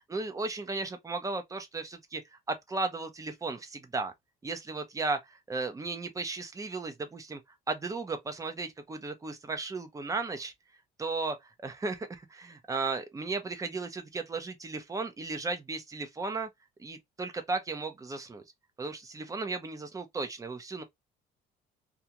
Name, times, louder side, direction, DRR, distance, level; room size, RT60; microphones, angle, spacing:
voice 1, 0.1-2.2 2.5-4.1 4.4-7.4 7.7-10.5 11.0-16.5 16.8-18.4 18.8-20.8, right 3 dB, 20° right, 0.7 m, -35 dB
2.4 x 2.3 x 2.9 m
cardioid pair, 110°, 17 cm